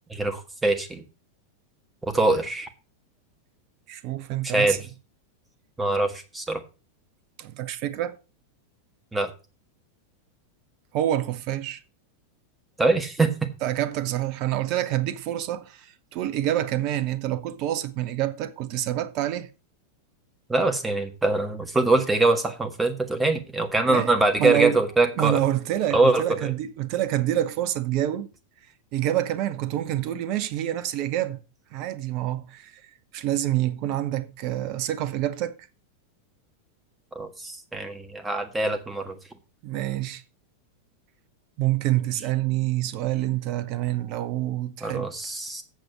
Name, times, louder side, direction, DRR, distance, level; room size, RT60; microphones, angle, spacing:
voice 1, 0.1-1.0 2.1-2.7 4.4-4.8 5.8-6.6 9.1-9.3 12.8-13.3 20.5-25.4 25.9-26.5 37.1-39.2 44.8-45.6, right 2 dB, 10° right, 1.6 m, -23 dB
voice 2, 3.9-4.8 7.4-8.2 10.9-11.8 13.6-19.5 23.9-24.1 24.4-24.8 25.2-28.3 28.9-31.4 31.7-32.8 33.1-35.5 39.6-40.2 41.6-45.1, right 13 dB, 40° right, 1.0 m, -27 dB
7.9 x 7.0 x 5.8 m
figure-of-eight pair, 90°, 0 cm